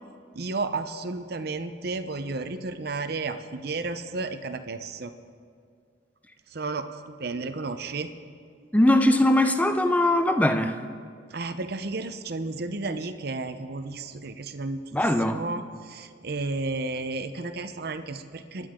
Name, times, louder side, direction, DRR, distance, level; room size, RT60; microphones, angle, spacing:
voice 1, 0.3-5.1 6.5-8.1 11.3-18.7, right 3 dB, 60° right, 10 dB, 0.7 m, -33 dB
voice 2, 8.7-10.7 14.9-15.4, left 1 dB, 10° left, 8 dB, 0.6 m, -21 dB
26.0 x 11.0 x 3.7 m, 2.2 s
head